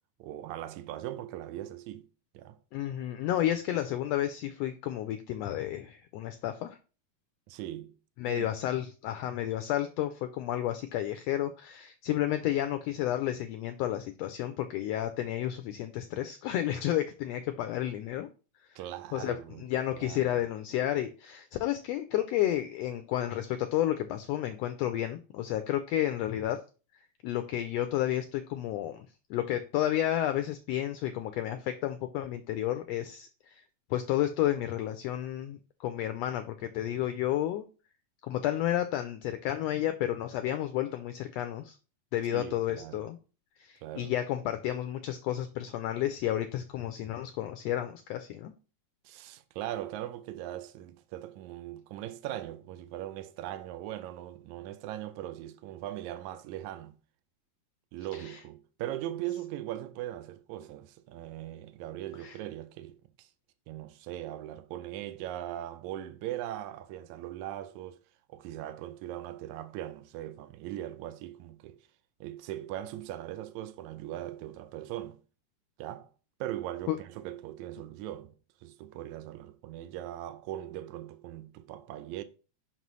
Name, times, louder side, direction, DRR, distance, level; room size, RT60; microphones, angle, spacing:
voice 1, 0.2-2.1 2.3-2.6 3.3-3.4 7.5-7.9 8.3-8.5 18.8-20.4 42.3-43.1 43.8-44.1 49.1-57.0 57.9-63.3 63.7-68.0 68.3-71.8 72.2-75.2 75.8-76.1 76.4-78.3 78.6-82.2, right 13 dB, 85° right, 2.0 m, -40 dB
voice 2, 2.7-6.8 8.2-18.3 18.7-18.8 19.1-26.6 27.2-33.6 33.9-37.6 38.2-41.7 42.1-43.2 43.6-48.5 58.2-58.4 62.2-62.4 76.9-77.0, left 12 dB, 80° left, 1.5 m, -31 dB
5.8 x 5.3 x 3.1 m
omnidirectional pair, 3.4 m